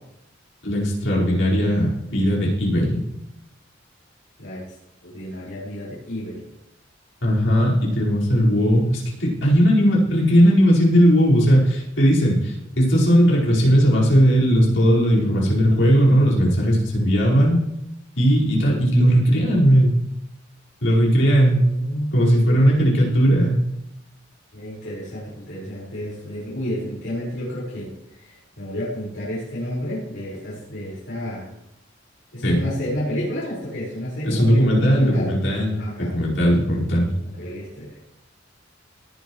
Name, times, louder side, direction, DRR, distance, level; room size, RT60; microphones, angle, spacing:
voice 1, 0.6-3.0 7.2-17.6 18.2-20.0 20.8-21.7 22.1-23.6 32.4-32.6 34.2-37.1, equal, 70° left, -5 dB, 5.0 m, -18 dB
voice 2, 5.0-6.5 21.4-22.7 24.5-31.5 32.3-35.3 35.8-36.1 37.4-38.0, equal, 90° left, -8 dB, 5.0 m, -30 dB
18.5 x 10.5 x 3.2 m, 0.86 s
head